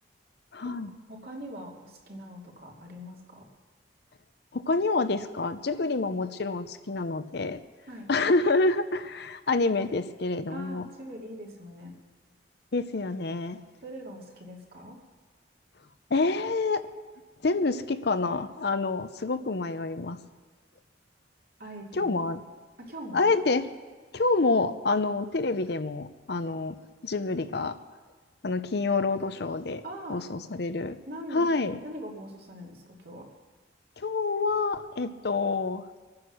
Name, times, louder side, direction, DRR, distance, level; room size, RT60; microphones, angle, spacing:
voice 1, 0.5-0.9 4.5-7.6 8.1-10.8 12.7-13.6 16.1-16.8 17.4-20.2 21.9-22.4 23.1-23.7 24.1-26.8 27.0-27.8 28.4-29.8 30.1-31.0 31.3-31.8 34.0-35.9, left 3 dB, 55° left, 11 dB, 0.7 m, -27 dB
voice 2, 1.1-3.5 7.9-8.1 10.5-11.9 13.8-15.0 21.6-22.2 22.8-23.3 29.8-30.2 31.1-31.5 31.8-33.3, equal, 55° right, -1 dB, 2.8 m, -42 dB
23.5 x 9.6 x 6.3 m, 1.3 s
head